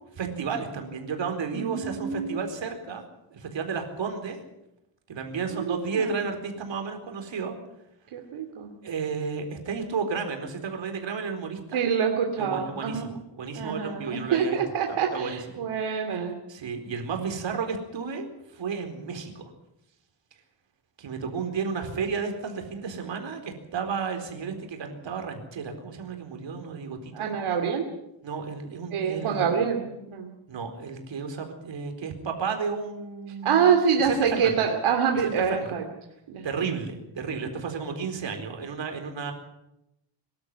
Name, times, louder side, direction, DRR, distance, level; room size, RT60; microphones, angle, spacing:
voice 1, 0.1-3.0 3.3-4.4 5.1-7.5 8.8-11.8 12.4-14.6 14.9-15.4 16.5-18.3 18.5-19.5 21.0-27.3 28.2-29.6 30.5-34.6 35.5-35.7 36.4-39.3, right 5 dB, 65° right, 5 dB, 4.3 m, -32 dB
voice 2, 1.5-2.4 5.5-6.1 8.1-8.7 11.7-13.1 13.5-16.3 27.1-27.8 28.9-30.3 33.4-35.8 36.3-36.4, right 7 dB, 85° right, 3 dB, 2.6 m, -26 dB
24.0 x 12.5 x 9.7 m, 0.87 s
wide cardioid pair, 135°, 48 cm